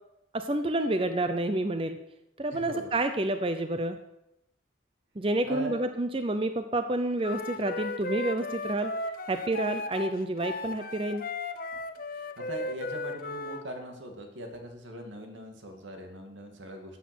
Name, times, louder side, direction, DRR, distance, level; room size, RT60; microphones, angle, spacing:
voice 1, 0.3-2.0 2.4-4.0 5.2-8.9 9.3-11.2, right 2 dB, 30° right, 8 dB, 0.6 m, -29 dB
voice 2, 2.5-2.9 5.4-5.8 12.1-17.0, equal, 85° right, 3 dB, 2.4 m, -41 dB
Wind instrument woodwind instrument, 7.2-13.6, left 2 dB, 50° left, 0.8 m, -36 dB
13.5 x 8.3 x 6.2 m, 0.87 s
head